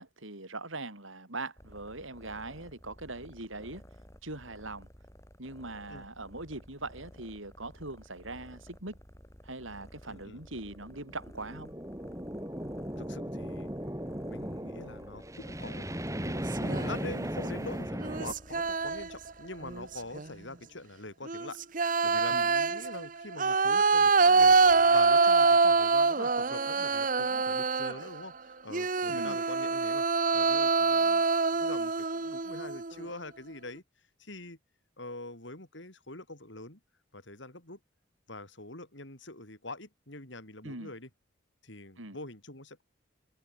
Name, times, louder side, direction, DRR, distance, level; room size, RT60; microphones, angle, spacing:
voice 1, 0.0-3.9 4.2-4.9 5.4-9.0 9.4-11.7 22.3-22.5 29.1-29.4 40.6-40.9 42.0-42.2, right 2 dB, 75° right, 7.0 m, -41 dB
sound 1, 1.6-20.8, equal, 15° left, 7.1 m, -54 dB
voice 2, 10.1-10.4 13.0-13.7 14.3-15.9 16.6-30.0 30.3-31.2 31.5-33.8 34.2-34.6 35.0-36.8 37.1-37.8 38.3-41.1 41.6-42.8, left 2 dB, 65° left, 4.9 m, -44 dB
sound 2, 10.6-18.3, equal, 15° right, 4.4 m, -37 dB
sound 3, 16.2-17.0 18.0-19.3 19.6-20.3 21.3-28.2 28.7-33.0, right 4 dB, 40° right, 1.0 m, -25 dB
open air
head